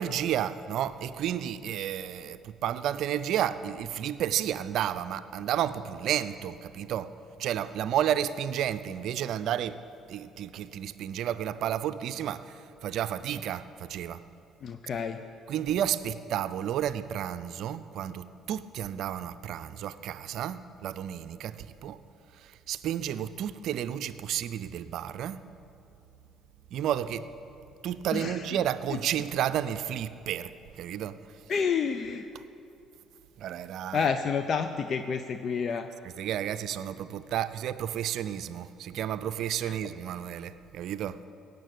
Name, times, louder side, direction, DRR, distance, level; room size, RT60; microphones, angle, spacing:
voice 1, 0.0-7.1 7.4-9.8 10.1-14.2 15.5-22.0 22.4-25.4 26.7-27.3 27.8-31.2 31.5-31.6 32.3-32.4 33.4-34.1 36.0-41.2, right 10 dB, 65° right, 13 dB, 0.5 m, -32 dB
voice 2, 14.6-15.2 28.1-28.6 28.9-29.0 31.5-32.3 33.9-35.9 39.6-39.8, left 6 dB, 50° left, 8 dB, 0.6 m, -29 dB
17.0 x 6.7 x 8.4 m, 2.9 s
hypercardioid pair, 50°, 0 cm